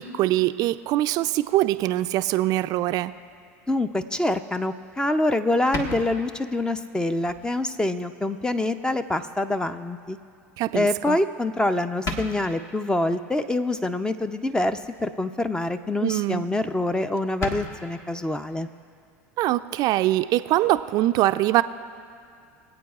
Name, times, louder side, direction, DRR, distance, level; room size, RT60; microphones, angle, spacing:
voice 1, 0.0-3.1 10.6-11.2 16.0-16.5 19.4-21.6, right 15 dB, 50° right, 11 dB, 0.4 m, -23 dB
voice 2, 3.7-10.2 10.7-18.7, left 2 dB, 10° left, 11 dB, 0.5 m, -25 dB
sound 1, 4.9-5.0 5.7-6.6 7.3-7.5 8.0-8.1 9.4-9.5 11.1-11.5 11.8-11.9 12.0-12.7 14.6-15.1 15.5-15.7 16.1-16.2 16.4-16.5 16.7-16.8 17.2-17.7, left 2 dB, 45° left, 1.4 m, -34 dB
24.5 x 8.5 x 2.4 m, 2.4 s
hypercardioid pair, 85°, 8 cm